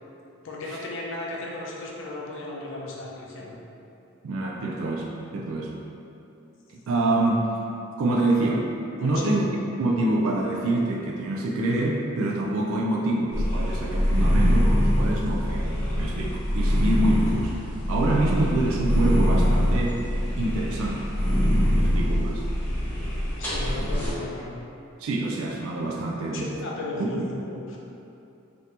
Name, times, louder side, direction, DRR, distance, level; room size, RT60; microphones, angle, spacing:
voice 1, 0.4-3.5 9.0-9.3 23.4-24.6 26.2-27.8, left 2 dB, 60° left, -2 dB, 0.5 m, -35 dB
voice 2, 4.2-5.8 6.9-7.4 8.0-8.6 9.0-9.4 9.8-15.7 16.0-17.5 17.9-20.0 20.4-21.1 21.7-22.4 25.0-26.5 27.0-27.1, right 2 dB, 75° right, -2 dB, 0.3 m, -26 dB
sound 1, 13.3-24.1, equal, 10° left, 0.7 m, -23 dB
2.8 x 2.6 x 3.3 m, 2.8 s
head